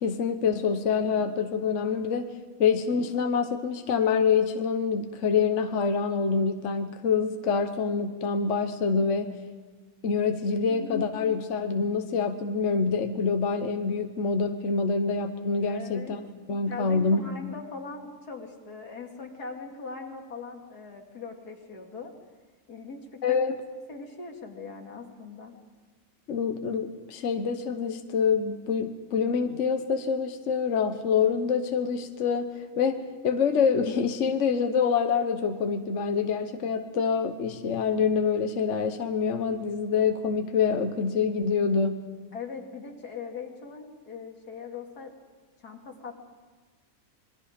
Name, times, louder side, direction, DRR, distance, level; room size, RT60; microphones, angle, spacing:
voice 1, 0.0-2.3 2.6-9.3 10.0-16.2 16.5-17.2 23.2-23.5 26.3-42.0, left 5 dB, 55° left, 7 dB, 1.3 m, -26 dB
voice 2, 15.6-16.2 16.7-22.1 22.7-23.4 23.9-25.5 42.3-45.1 45.6-46.1, left 4 dB, 85° left, 2 dB, 2.8 m, -40 dB
27.0 x 22.0 x 5.1 m, 1.4 s
omnidirectional pair, 1.6 m